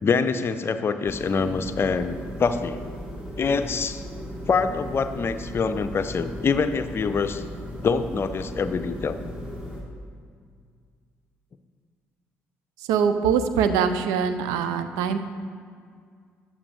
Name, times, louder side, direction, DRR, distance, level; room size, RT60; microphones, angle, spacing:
voice 1, 0.0-2.8 3.4-4.0 4.5-7.4 7.8-9.2, left 5 dB, 40° left, 10 dB, 0.6 m, -25 dB
sound 1, 1.0-9.8, equal, 20° right, 2.5 m, -37 dB
voice 2, 12.9-15.2, right 7 dB, 70° right, 10 dB, 0.5 m, -23 dB
14.0 x 8.7 x 2.6 m, 2.1 s
figure-of-eight pair, 50°, 7 cm